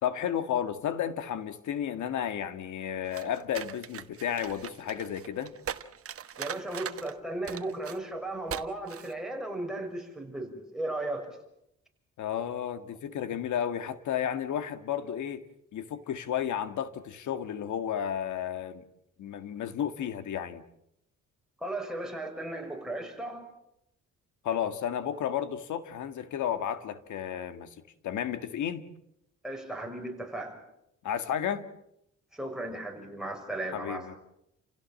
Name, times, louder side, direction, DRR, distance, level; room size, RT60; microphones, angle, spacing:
voice 1, 0.0-5.5 12.2-15.4 15.7-18.8 19.2-20.6 24.4-27.8 28.0-28.8 31.0-31.7 33.7-34.1, left 9 dB, 75° left, 1.9 m, -32 dB
sound 1, 3.1-7.1 7.5-8.0 8.5-8.6 8.9-9.1, right 8 dB, 50° right, 1.3 m, -40 dB
voice 2, 6.4-11.4 21.6-23.5 29.4-30.6 32.3-34.2, right 1 dB, ahead, 6.2 m, -36 dB
30.0 x 16.5 x 7.6 m
cardioid pair, 90°, 30 cm